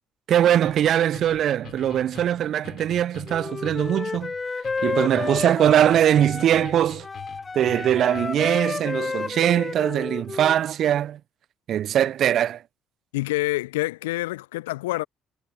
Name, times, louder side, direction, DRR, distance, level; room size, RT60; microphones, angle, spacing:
voice 1, 0.3-4.3 4.8-7.1 7.5-11.2 11.7-12.6, right 10 dB, 55° right, 0.6 m, -21 dB
sound 1, 0.6-8.5, left 10 dB, 55° left, 4.7 m, -44 dB
Wind instrument woodwind instrument, 3.3-6.7 7.0-10.6, left 4 dB, 30° left, 0.3 m, -31 dB
voice 2, 13.1-15.0, left 19 dB, 75° left, 1.0 m, -27 dB
figure-of-eight pair, 45°, 0 cm